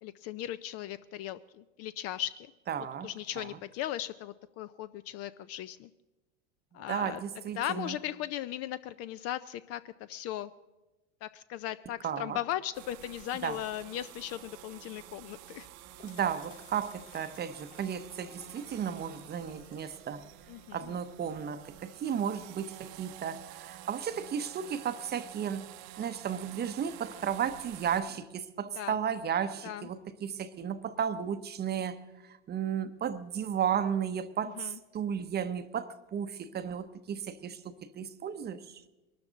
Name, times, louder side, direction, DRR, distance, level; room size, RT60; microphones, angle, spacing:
voice 1, 0.0-2.5 3.0-5.9 6.7-7.2 7.6-10.5 11.2-15.7 20.5-21.0 28.8-29.0 29.6-29.9 34.6-34.8, left 12 dB, 35° left, 0.4 m, -37 dB
voice 2, 2.7-3.1 3.4-3.5 6.9-8.0 12.0-12.4 13.4-13.6 16.0-20.3 20.7-25.6 26.0-32.0 32.3-38.8, right 8 dB, 25° right, 0.8 m, -34 dB
sound 1, 12.7-28.0, right 14 dB, 50° right, 0.9 m, -50 dB
sound 2, 15.5-21.1, left 9 dB, 55° left, 3.9 m, -58 dB
22.0 x 12.5 x 3.9 m
hypercardioid pair, 105°, 42 cm